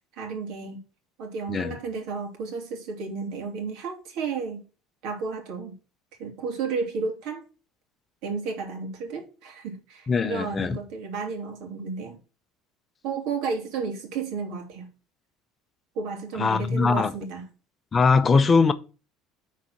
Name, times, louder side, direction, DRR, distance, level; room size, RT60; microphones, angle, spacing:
voice 1, 0.1-0.8 1.2-4.6 5.0-5.7 6.2-7.4 8.2-12.2 13.0-14.9 15.9-17.5, right 4 dB, 65° right, 3.0 m, -32 dB
voice 2, 10.1-10.8 16.4-17.1 17.9-18.7, left 4 dB, 20° left, 0.7 m, -21 dB
9.5 x 4.3 x 6.2 m
cardioid pair, 155°, 0 cm